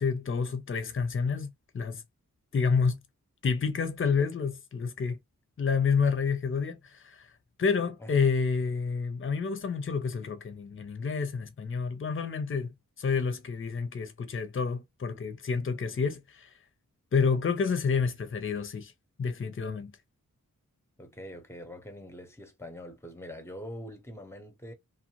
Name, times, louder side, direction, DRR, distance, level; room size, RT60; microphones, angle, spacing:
voice 1, 0.0-2.0 2.5-3.0 3.4-5.2 5.6-7.3 7.6-12.7 13.0-16.5 17.1-18.9 19.2-20.0, left 5 dB, 40° left, 0.6 m, -29 dB
voice 2, 21.0-24.7, equal, 10° left, 0.8 m, -44 dB
2.5 x 2.1 x 2.8 m
wide cardioid pair, 70°, 32 cm